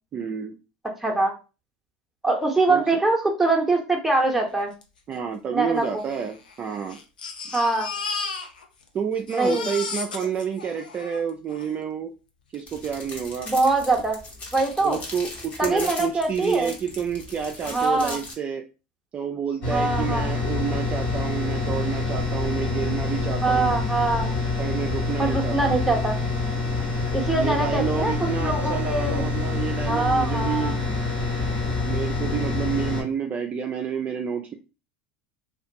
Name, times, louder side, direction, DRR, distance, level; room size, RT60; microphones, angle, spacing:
voice 1, 0.1-0.6 2.7-3.0 5.1-7.0 8.9-12.1 12.5-13.5 14.8-18.6 19.1-23.8 24.6-25.7 27.2-30.8 31.8-34.5, right 7 dB, 30° right, 4 dB, 0.3 m, -29 dB
voice 2, 1.0-1.3 2.2-4.7 5.5-6.0 7.5-7.9 9.3-9.7 13.5-14.2 14.5-15.0 15.6-16.7 17.7-18.2 19.7-20.3 23.4-24.3 25.2-26.2 27.1-28.1 28.4-29.3 29.9-30.8, right 2 dB, 5° right, 0 dB, 0.8 m, -23 dB
Crying sobbing, 4.8-4.9 5.1-5.2 6.0-8.9 9.1-11.7 12.5-12.6 13.0-13.1, left 4 dB, 85° left, 0.5 m, -34 dB
sound 1, 12.7-18.3, left 2 dB, 35° left, 1.0 m, -39 dB
sound 2, 19.6-33.0, left 3 dB, 55° left, 1.3 m, -26 dB
2.4 x 2.3 x 2.6 m, 0.32 s
hypercardioid pair, 80°, 5 cm